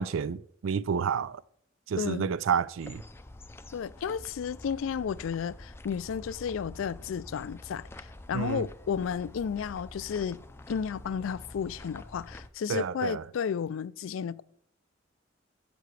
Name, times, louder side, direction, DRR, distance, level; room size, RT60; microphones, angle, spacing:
voice 1, 0.0-1.4 1.9-3.0 8.3-8.6 12.7-13.2, right 7 dB, 90° right, 0.4 m, -30 dB
voice 2, 2.0-2.3 3.7-10.4 10.7-14.4, left 7 dB, 85° left, 0.3 m, -33 dB
sound 1, 2.8-12.5, left 1 dB, 10° left, 0.4 m, -47 dB
12.5 x 7.7 x 3.3 m
head